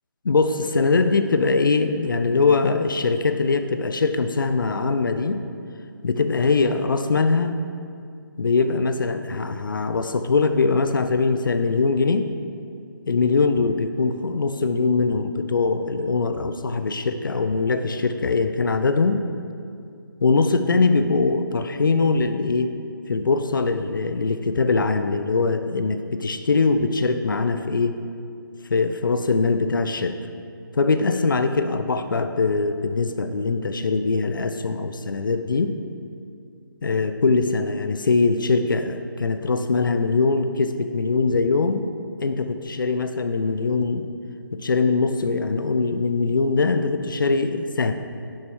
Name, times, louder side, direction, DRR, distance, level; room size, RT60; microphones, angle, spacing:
voice 1, 0.2-5.4 6.0-7.6 8.4-12.3 13.1-19.2 20.2-22.8 23.1-28.0 28.7-30.2 30.7-35.8 36.8-41.9 42.2-44.1 44.5-47.9, left 4 dB, 65° left, 9 dB, 0.6 m, -22 dB
11.0 x 9.2 x 3.1 m, 2.4 s
figure-of-eight pair, 150°, 12 cm